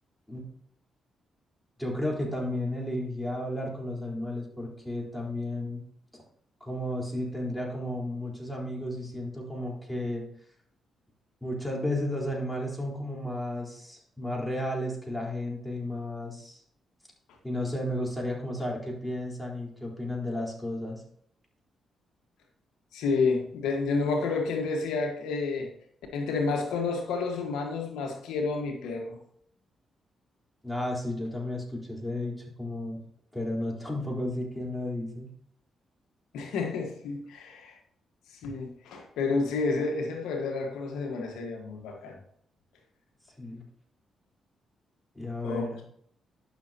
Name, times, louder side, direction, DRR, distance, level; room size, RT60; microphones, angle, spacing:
voice 1, 1.8-5.8 6.1-6.2 6.6-10.2 11.4-16.6 17.4-21.0 30.6-33.0 33.3-35.3 43.4-43.6 45.1-45.7, left 1 dB, 5° left, -2 dB, 4.0 m, -33 dB
voice 2, 22.9-25.7 26.1-29.2 36.3-37.8 38.3-42.2 45.4-45.8, left 4 dB, 85° left, 3 dB, 1.4 m, -30 dB
11.5 x 6.4 x 2.8 m, 0.66 s
supercardioid pair, 60°, 0 cm